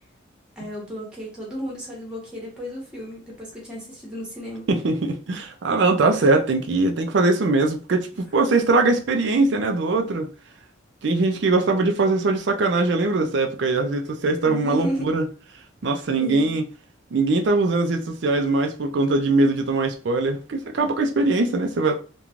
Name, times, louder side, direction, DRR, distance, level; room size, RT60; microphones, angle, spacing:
voice 1, 0.6-4.7 14.4-15.1 16.2-16.5, equal, 5° right, 1.0 m, -33 dB
voice 2, 4.7-10.3 11.0-15.2 15.8-16.6 17.1-22.0, right 3 dB, 65° right, 0.4 m, -21 dB
3.0 x 2.2 x 2.5 m
head